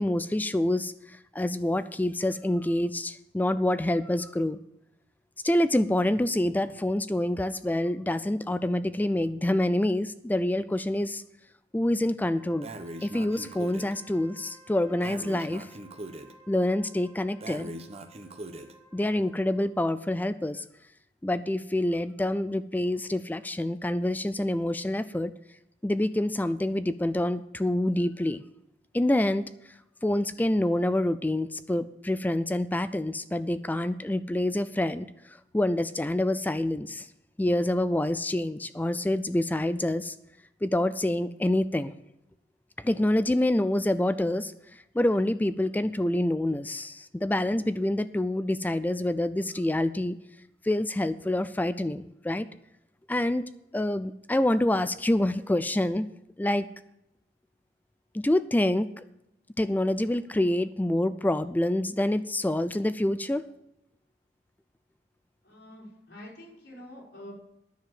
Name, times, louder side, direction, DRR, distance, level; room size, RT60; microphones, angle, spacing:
voice 1, 0.0-4.6 5.4-11.2 11.7-12.7 13.0-15.7 16.5-17.7 18.9-20.6 21.2-25.3 25.8-28.4 28.9-29.5 30.0-37.1 37.4-40.2 40.6-41.9 42.8-50.2 50.6-52.5 53.1-53.4 53.7-56.1 56.4-56.7 58.1-59.0 59.6-63.5, left 1 dB, 10° left, 13 dB, 0.4 m, -27 dB
Wind instrument woodwind instrument, 12.3-19.8, right 1 dB, 55° left, 4.2 m, -56 dB
Breathing, 12.6-13.9 15.0-16.3 17.4-18.7, right 1 dB, 35° right, 0.9 m, -41 dB
voice 2, 65.4-67.3, left 1 dB, 90° left, -4 dB, 4.8 m, -46 dB
10.5 x 6.8 x 7.6 m, 0.83 s
head